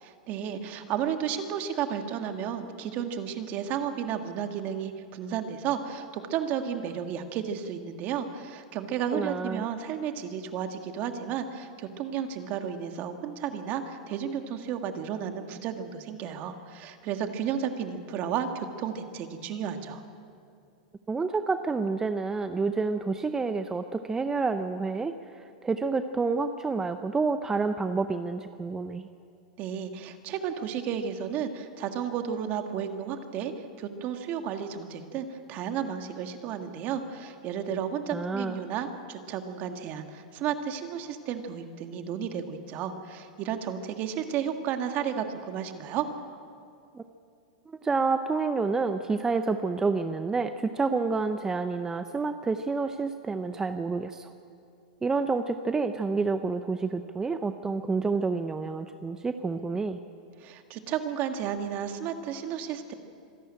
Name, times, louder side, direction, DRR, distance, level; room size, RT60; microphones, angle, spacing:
voice 1, 0.0-20.0 29.6-46.1 60.4-62.9, right 8 dB, 40° right, 6 dB, 1.7 m, -33 dB
voice 2, 9.1-9.6 21.1-29.1 38.1-38.6 46.9-47.0 47.7-54.3 55.0-60.0, right 4 dB, 15° right, 9 dB, 0.7 m, -29 dB
25.5 x 11.5 x 8.9 m, 2.5 s
hypercardioid pair, 125°, 4 cm